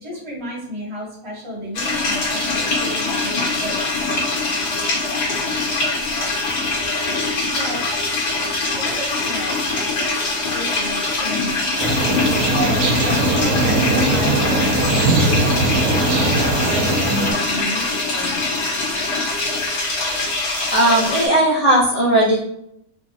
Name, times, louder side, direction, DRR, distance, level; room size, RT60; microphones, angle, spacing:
voice 1, 0.0-3.8 7.5-7.8 8.8-10.1 10.5-11.7 12.5-16.9 17.2-18.4, equal, 25° right, -4 dB, 0.8 m, -32 dB
sound 1, 1.7-21.3, left 3 dB, 90° left, 1.5 m, -23 dB
Quiet exterior ambience, 11.8-17.3, right 2 dB, 80° right, 1.1 m, -19 dB
voice 2, 20.7-22.4, right 1 dB, 50° left, -7 dB, 0.4 m, -16 dB
3.3 x 2.0 x 2.6 m, 0.74 s
omnidirectional pair, 1.6 m